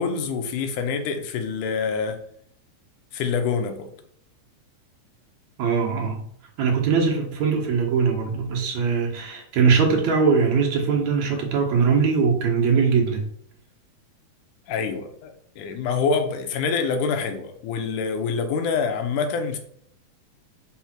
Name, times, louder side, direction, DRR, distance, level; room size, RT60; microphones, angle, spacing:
voice 1, 0.0-2.2 3.1-3.9 14.7-19.6, left 5 dB, 85° left, 6 dB, 2.5 m, -26 dB
voice 2, 5.6-6.3 6.6-13.3, right 5 dB, 70° right, 0 dB, 2.6 m, -21 dB
6.1 x 3.6 x 6.0 m, 0.65 s
omnidirectional pair, 3.5 m